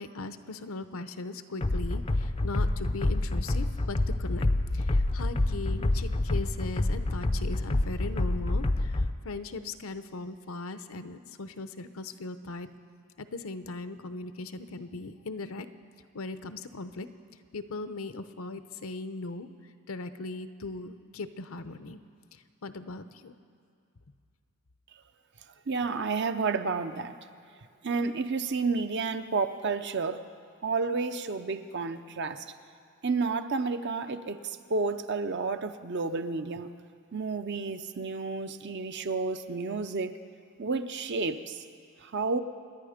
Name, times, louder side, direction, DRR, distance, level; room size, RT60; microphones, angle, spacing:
voice 1, 0.0-4.5 4.7-12.7 13.2-15.7 16.1-17.1 17.5-19.5 19.9-22.0 22.3-23.3, left 3 dB, 70° left, 11 dB, 0.7 m, -39 dB
sound 1, 1.6-9.1, left 2 dB, 25° left, 0.5 m, -28 dB
voice 2, 25.7-27.1 27.8-30.2 30.6-32.4 33.0-36.7 37.1-40.1 40.6-41.6 42.0-42.4, right 4 dB, 50° right, 9 dB, 0.7 m, -31 dB
27.5 x 10.5 x 5.1 m, 2.3 s
head